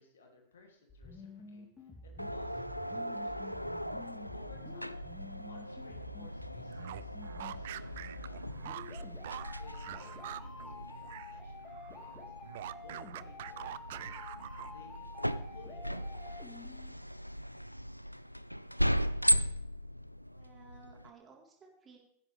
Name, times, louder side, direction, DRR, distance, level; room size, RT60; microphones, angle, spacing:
voice 1, 0.0-3.6 4.3-8.9 9.6-12.3 12.8-14.2 14.7-16.8, left 4 dB, 65° left, 2 dB, 2.8 m, -59 dB
sound 1, 0.9-16.9, left 3 dB, 20° left, 3.4 m, -50 dB
sound 2, 2.2-21.1, equal, 90° left, 0.4 m, -38 dB
sound 3, 6.7-11.4 11.7-15.0, right 13 dB, 55° right, 0.4 m, -45 dB
voice 2, 20.3-22.0, right 4 dB, 25° right, 0 dB, 3.9 m, -57 dB
17.0 x 10.0 x 3.4 m, 0.75 s
figure-of-eight pair, 90°, 0 cm